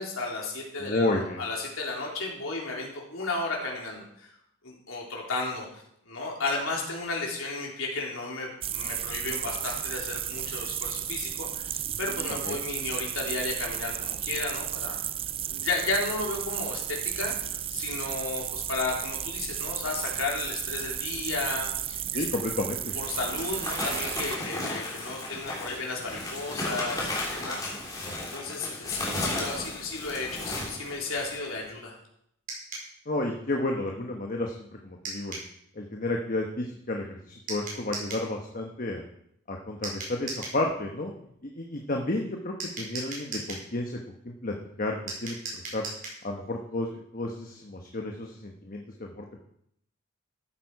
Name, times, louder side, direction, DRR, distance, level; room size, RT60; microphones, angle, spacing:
voice 1, 0.0-4.3 4.6-5.7 6.1-15.0 15.5-22.2 22.9-27.7 28.3-31.9, left 3 dB, 85° left, -1 dB, 3.5 m, -33 dB
voice 2, 0.8-1.4 12.4-12.6 22.1-22.9 28.0-28.2 33.1-35.4 35.8-39.0 39.5-41.1 41.6-43.9 44.2-45.8 46.2-49.4, left 2 dB, 40° left, 1 dB, 1.2 m, -32 dB
sound 1, 8.6-24.4, right 10 dB, 25° right, 0.3 m, -33 dB
sound 2, 22.1-22.2 22.8-31.5, left 2 dB, 20° left, 3.3 m, -34 dB
sound 3, 32.5-32.9 35.0-35.5 37.5-38.3 39.8-40.6 42.6-43.7 45.1-46.2, right 3 dB, 45° right, 4.7 m, -37 dB
13.5 x 8.6 x 4.8 m, 0.73 s
head